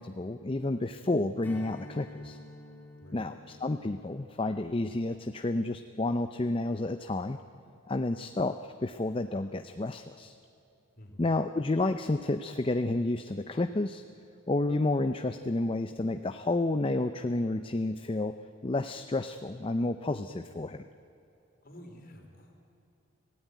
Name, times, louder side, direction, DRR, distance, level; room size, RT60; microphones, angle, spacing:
voice 1, 0.0-2.4 3.1-7.4 7.9-10.4 11.2-14.0 14.5-18.3 18.6-20.8, left 2 dB, 25° left, 9 dB, 0.5 m, -30 dB
Strum, 1.4-6.2, left 1 dB, 10° left, 2.3 m, -50 dB
voice 2, 21.6-22.5, equal, 45° left, 2 dB, 3.8 m, -50 dB
25.0 x 17.0 x 9.3 m, 2.8 s
head